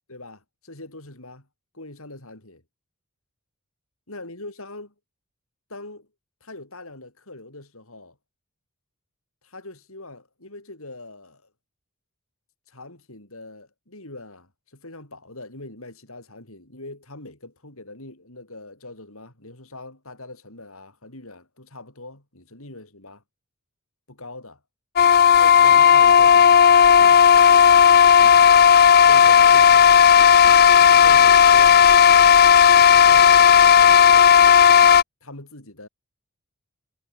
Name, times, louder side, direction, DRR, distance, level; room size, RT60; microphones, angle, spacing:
voice 1, 0.1-1.5 1.7-2.6 4.1-4.9 5.7-6.1 6.4-8.2 9.4-11.4 12.7-23.2 24.1-24.6 25.3-26.6 27.0-27.7 28.1-28.6 29.0-30.0 31.0-31.9 32.7-34.3 35.2-35.9, left 2 dB, 70° left, 6.5 m, -42 dB
sound 1, 25.0-35.0, left 8 dB, 45° left, 0.5 m, -13 dB
head